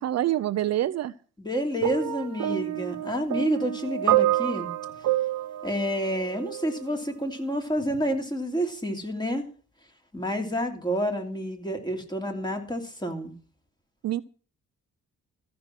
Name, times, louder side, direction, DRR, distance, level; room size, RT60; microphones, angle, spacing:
voice 1, 0.0-1.1 14.0-14.2, right 13 dB, 60° right, 12 dB, 0.6 m, -26 dB
voice 2, 1.4-4.7 5.6-9.5 10.1-13.3, equal, 15° left, 3 dB, 3.0 m, -29 dB
sound 1, 1.8-6.9 7.8-8.0, right 13 dB, 75° right, 1.1 m, -28 dB
14.5 x 6.1 x 7.5 m, 0.40 s
cardioid pair, 90°, 30 cm